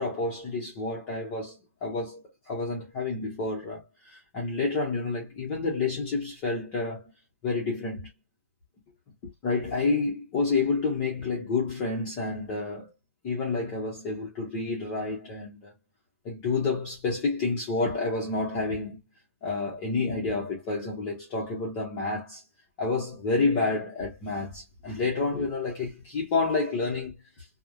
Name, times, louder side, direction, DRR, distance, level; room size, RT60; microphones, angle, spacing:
voice 1, 0.0-2.2 2.5-7.1 7.4-8.1 9.4-12.9 13.2-15.7 16.2-19.0 19.4-22.4 22.8-27.5, left 3 dB, 20° left, 0.6 m, -29 dB
3.0 x 2.0 x 2.4 m
hypercardioid pair, 175°, 8 cm